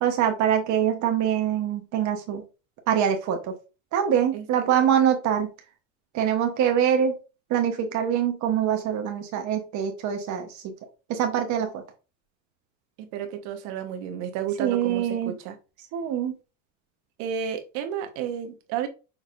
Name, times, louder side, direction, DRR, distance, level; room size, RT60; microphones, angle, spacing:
voice 1, 0.0-2.4 2.9-3.5 3.9-5.5 6.1-7.2 7.5-10.7 11.1-11.8 14.6-15.3 15.9-16.3, right 9 dB, 50° right, 1.0 m, -24 dB
voice 2, 13.0-15.6 17.2-18.9, right 8 dB, 70° right, 1.2 m, -32 dB
6.3 x 3.3 x 2.5 m
supercardioid pair, 115°, 37 cm